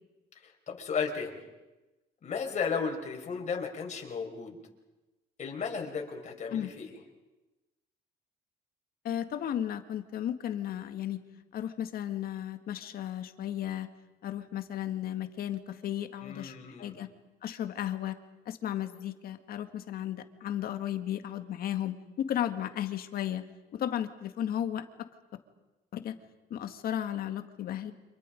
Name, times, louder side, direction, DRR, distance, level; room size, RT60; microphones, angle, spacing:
voice 1, 0.4-1.4 2.2-4.6 5.4-7.0 16.2-17.0, left 5 dB, 45° left, 1 dB, 5.2 m, -34 dB
voice 2, 9.0-11.2 11.5-13.9 14.2-17.1 17.4-18.2 18.5-23.4 23.7-24.8 25.9-26.2 26.5-27.9, left 11 dB, 65° left, 9 dB, 1.8 m, -34 dB
30.0 x 27.0 x 5.3 m, 1.1 s
cardioid pair, 110°, 17 cm